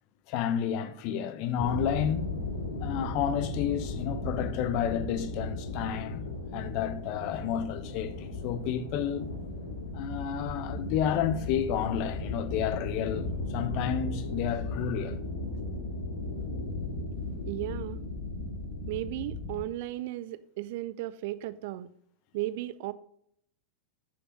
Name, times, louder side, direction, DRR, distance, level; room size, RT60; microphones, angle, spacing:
voice 1, 0.3-2.3 2.8-6.2 6.5-9.3 9.9-15.2, left 9 dB, 45° left, 1.0 m, -31 dB
sound 1, 1.6-19.6, left 2 dB, 75° left, 2.2 m, -36 dB
voice 2, 17.5-18.0 18.9-21.9 22.3-22.9, right 15 dB, 55° right, 0.5 m, -35 dB
9.6 x 6.9 x 4.8 m
figure-of-eight pair, 85°, 0 cm